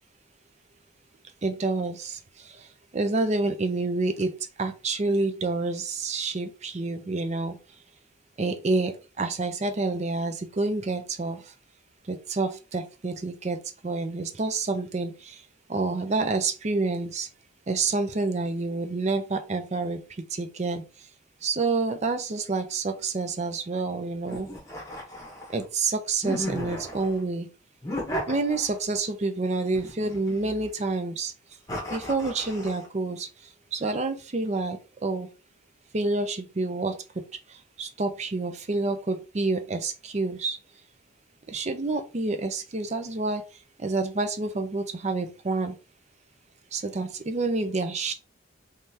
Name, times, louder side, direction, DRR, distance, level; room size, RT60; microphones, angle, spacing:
voice 1, 1.4-2.0 2.4-2.7 2.9-7.6 8.4-11.5 12.1-13.6 13.8-15.4 15.7-17.3 17.7-20.0 20.3-20.8 21.4-24.5 25.5-27.5 28.3-31.3 31.9-33.3 33.7-35.3 35.9-36.9 37.5-40.6 41.5-43.4 43.8-45.8 46.7-48.1, right 3 dB, 35° right, 8 dB, 0.5 m, -28 dB
sound 1, 24.3-25.6 26.2-27.2 27.8-29.0 29.7-30.8 31.7-32.9, left 1 dB, 15° left, 1.0 m, -35 dB
3.6 x 3.2 x 2.8 m, 0.32 s
head